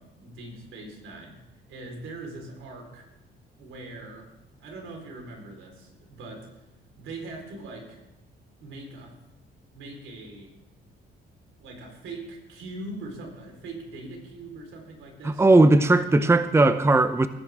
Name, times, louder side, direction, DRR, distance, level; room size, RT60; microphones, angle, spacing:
voice 1, 0.0-3.1 3.6-4.3 4.6-6.5 7.0-8.0 8.6-9.1 9.7-10.6 11.6-16.5, right 2 dB, 85° right, 4.3 m, -41 dB
voice 2, 15.2-17.3, right 2 dB, 15° right, 0.7 m, -18 dB
20.0 x 10.5 x 3.6 m
cardioid pair, 90°, 20 cm